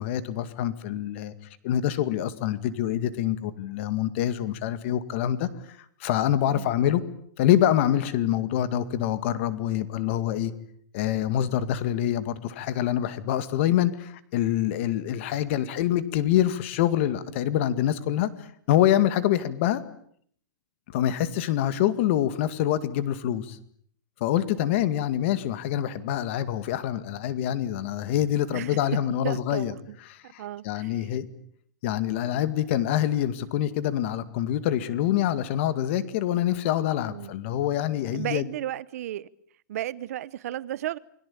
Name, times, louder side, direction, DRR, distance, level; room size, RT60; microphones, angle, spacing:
voice 1, 0.0-1.3 1.6-5.5 6.0-7.0 7.4-10.5 10.9-18.3 18.7-19.8 20.9-23.6 24.2-29.7 30.1-31.3 31.8-38.5, left 11 dB, 35° left, 2.1 m, -25 dB
voice 2, 29.2-30.0 30.2-31.1 37.1-37.3 38.1-39.3 39.7-41.0, right 13 dB, 45° right, 1.1 m, -34 dB
29.0 x 22.0 x 8.7 m
hypercardioid pair, 170°, 11 cm